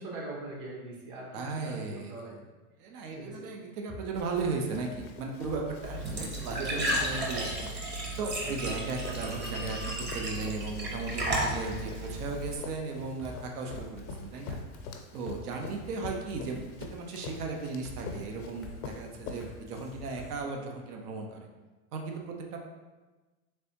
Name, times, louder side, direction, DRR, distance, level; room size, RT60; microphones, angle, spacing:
voice 1, 0.0-1.3 1.6-2.5 3.2-3.4 6.4-6.8 8.4-8.6, right 2 dB, 55° right, -3 dB, 1.2 m, -41 dB
voice 2, 1.3-2.4 2.8-7.9 8.2-14.6 15.1-16.6 16.9-21.5 21.9-22.6, right 3 dB, 85° right, 2 dB, 0.7 m, -36 dB
sound 1, 3.9-4.5 4.9-5.1 5.4-7.1 7.5-8.7 9.1-9.2 9.6-12.8 13.2-13.3 13.7-15.4 15.8-16.9 17.3-17.5 17.8-20.3, left 1 dB, ahead, 0.3 m, -47 dB
Run, 4.2-20.3, left 5 dB, 85° left, 0.6 m, -46 dB
Glass / Trickle dribble / Fill (with liquid), 5.8-12.6, right 1 dB, 25° right, 0.8 m, -34 dB
3.4 x 3.3 x 2.8 m, 1.2 s
hypercardioid pair, 110°, 44 cm